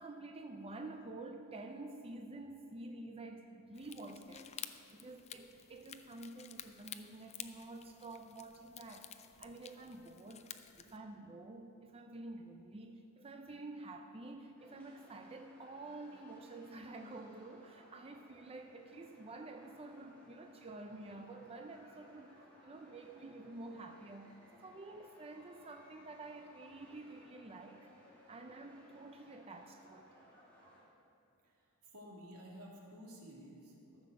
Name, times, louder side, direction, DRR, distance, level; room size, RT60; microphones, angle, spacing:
voice 1, 0.0-10.5 10.8-22.4 22.6-24.3 24.6-27.9 28.3-30.1, right 2 dB, 25° right, 4 dB, 0.6 m, -49 dB
sound 1, 3.7-11.0, left 9 dB, 30° left, 0.4 m, -52 dB
sound 2, 14.6-30.8, equal, 5° left, 2.6 m, -63 dB
voice 2, 31.9-34.0, equal, 85° right, -2 dB, 2.3 m, -53 dB
14.0 x 7.2 x 6.4 m, 2.6 s
head